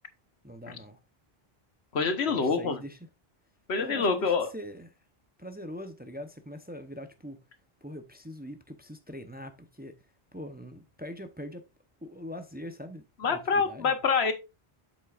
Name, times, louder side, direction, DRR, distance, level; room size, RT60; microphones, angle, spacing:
voice 1, 0.4-1.0 2.2-3.0 3.8-4.9 5.4-7.4 7.8-9.9 10.3-11.7 12.0-13.9, equal, 10° right, 0.6 m, -42 dB
voice 2, 1.9-2.8 3.7-4.5 13.2-14.3, left 5 dB, 90° left, 1.4 m, -26 dB
8.2 x 7.3 x 2.4 m
omnidirectional pair, 1.1 m